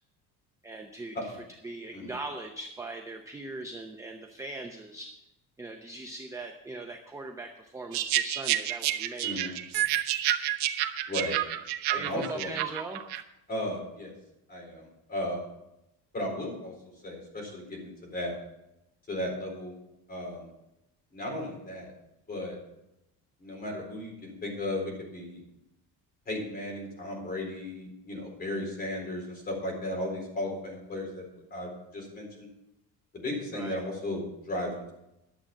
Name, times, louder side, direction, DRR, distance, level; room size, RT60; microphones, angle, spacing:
voice 1, 0.6-1.4 1.6-5.1 5.6-9.6 11.9-13.0 33.5-33.8, right 2 dB, 10° right, 3 dB, 0.6 m, -40 dB
sound 1, 7.9-13.2, right 12 dB, 85° right, 1.1 m, -29 dB
voice 2, 11.9-12.5 13.5-14.1 14.5-15.5 16.1-16.7 17.0-18.3 19.1-19.7 20.1-20.5 21.1-21.9 22.3-22.6 23.4-25.4 26.3-31.2 31.5-32.5 33.1-34.9, left 1 dB, 25° left, 0 dB, 4.1 m, -35 dB
11.5 x 7.7 x 7.1 m, 0.88 s
cardioid pair, 175°, 39 cm